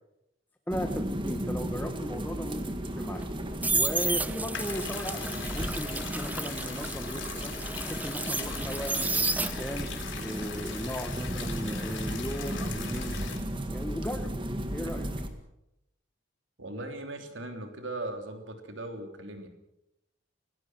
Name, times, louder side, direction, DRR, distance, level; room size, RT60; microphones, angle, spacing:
voice 1, 0.7-3.2 3.7-7.5 7.8-13.2 13.6-14.3 14.7-15.1, equal, 10° left, 5 dB, 1.3 m, -37 dB
sound 1, 0.7-15.3, right 1 dB, 25° right, 1.9 m, -35 dB
sound 2, 3.2-9.9 10.3-13.2 13.4-13.8, right 3 dB, 10° right, 0.8 m, -32 dB
sound 3, 4.5-13.4, left 7 dB, 70° left, 3.3 m, -41 dB
voice 2, 16.6-19.5, right 2 dB, 75° right, 5 dB, 3.4 m, -38 dB
28.0 x 18.0 x 6.1 m, 0.87 s
head